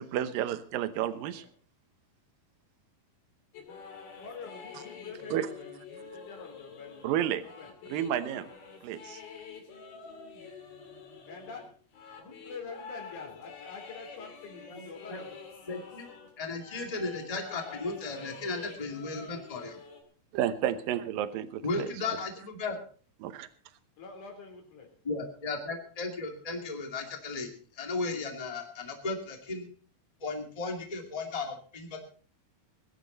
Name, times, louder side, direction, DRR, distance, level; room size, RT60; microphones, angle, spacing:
voice 1, 0.0-1.4 5.3-5.5 7.0-7.4 7.9-8.5 8.8-9.2 20.3-21.9 23.2-23.5, right 11 dB, 75° right, 11 dB, 2.6 m, -31 dB
sound 1, 3.5-16.3 16.6-20.0, left 5 dB, 75° left, 4.6 m, -47 dB
voice 2, 4.2-7.7 11.3-11.6 12.0-15.4 22.0-22.1 24.0-24.9, left 5 dB, 55° left, 2 dB, 5.0 m, -46 dB
voice 3, 15.7-16.1 16.4-19.8 21.6-22.8 25.1-27.5 27.8-29.7 30.2-32.0, left 3 dB, 15° left, 3 dB, 1.7 m, -35 dB
21.5 x 11.5 x 4.1 m, 0.41 s
omnidirectional pair, 4.3 m